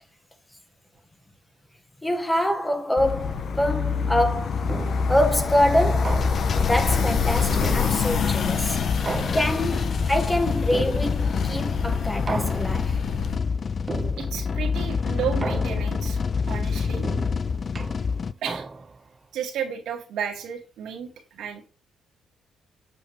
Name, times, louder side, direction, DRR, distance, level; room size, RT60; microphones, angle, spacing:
voice 1, 2.0-4.6 5.1-6.3 6.6-8.8 9.3-13.0, left 1 dB, 10° left, 1.3 m, -25 dB
sound 1, 3.0-13.4, left 5 dB, 55° left, 1.1 m, -27 dB
sound 2, 4.7-5.2 6.1-6.7 7.6-8.4 9.1-9.9 10.7-11.4 12.3-13.0 13.9-14.5 15.4-16.1 17.0-19.1, right 3 dB, 30° right, 0.5 m, -34 dB
sound 3, 6.1-18.3, left 5 dB, 40° left, 0.4 m, -27 dB
voice 2, 14.2-16.2 16.5-17.1 18.4-18.6 19.3-21.7, right 8 dB, 80° right, 1.8 m, -32 dB
8.2 x 7.0 x 3.0 m
cardioid pair, 90°, 0 cm